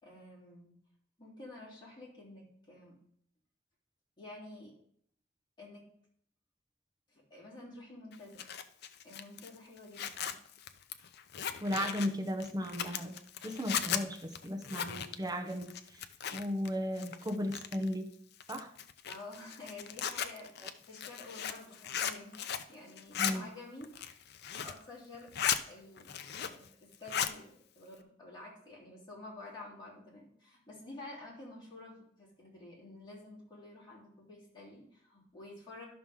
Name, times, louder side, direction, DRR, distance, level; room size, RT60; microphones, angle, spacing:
voice 1, 0.0-0.7 1.2-3.0 4.2-4.7 5.6-5.9 7.1-8.5 9.0-10.4 19.1-24.2 24.6-25.3 25.7-26.1 26.4-35.8, left 2 dB, 25° left, -6 dB, 3.6 m, -50 dB
Zipper (clothing), 8.1-16.7 17.0-17.9 18.4-22.7 23.0-23.3 23.8-24.8 25.1-25.6 26.0-26.7 26.9-27.4, left 8 dB, 60° left, 0.6 m, -37 dB
voice 2, 11.6-16.1 16.3-18.1 18.5-18.7 23.2-23.4, equal, 20° right, 5 dB, 0.7 m, -36 dB
12.5 x 5.9 x 3.7 m, 0.66 s
head